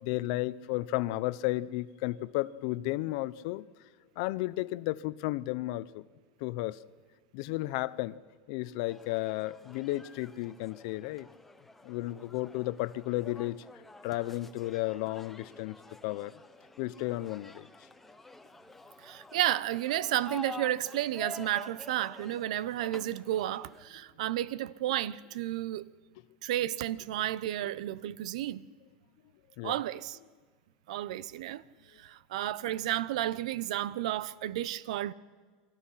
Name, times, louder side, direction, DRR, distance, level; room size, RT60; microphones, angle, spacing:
voice 1, 0.0-3.6 4.2-6.0 6.4-6.8 7.3-8.2 8.5-11.3 11.8-13.6 14.0-15.8 16.0-16.3 16.8-17.7 29.6-29.8, left 18 dB, 60° left, 0.8 m, -33 dB
sound 1, 8.9-23.8, left 2 dB, 5° left, 1.2 m, -49 dB
voice 2, 19.0-25.8 26.4-28.7 29.6-30.2 30.9-31.6 32.0-35.1, right 13 dB, 80° right, 0.9 m, -32 dB
30.0 x 23.5 x 5.8 m
supercardioid pair, 155°, 4 cm